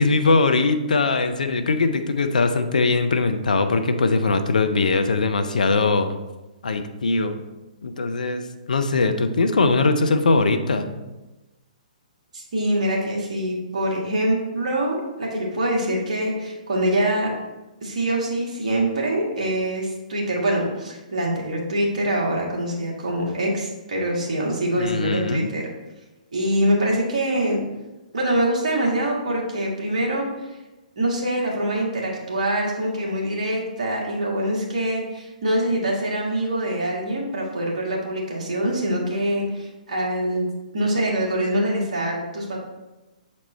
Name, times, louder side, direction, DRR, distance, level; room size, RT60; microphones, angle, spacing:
voice 1, 0.0-6.2 6.6-7.4 7.8-11.0 24.8-25.5, left 3 dB, 70° left, 8 dB, 0.6 m, -21 dB
voice 2, 12.3-17.3 17.8-25.7 26.3-27.6 28.1-30.3 31.0-40.5 40.7-42.6, right 1 dB, 60° right, -3 dB, 1.8 m, -24 dB
7.2 x 4.2 x 3.2 m, 1.1 s
figure-of-eight pair, 125°, 4 cm